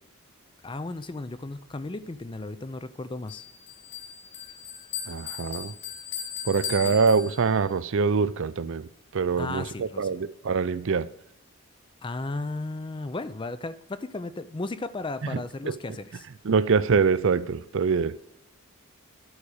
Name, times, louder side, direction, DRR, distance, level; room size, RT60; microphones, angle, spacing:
voice 1, 0.6-3.4 6.8-7.0 9.4-10.2 12.0-16.3, left 2 dB, 20° left, 0.4 m, -35 dB
Bell, 3.3-7.8, left 8 dB, 50° left, 2.3 m, -38 dB
voice 2, 5.1-5.7 6.4-11.1 15.3-15.7 16.4-18.2, right 5 dB, 60° right, 0.5 m, -24 dB
11.0 x 4.9 x 6.4 m
head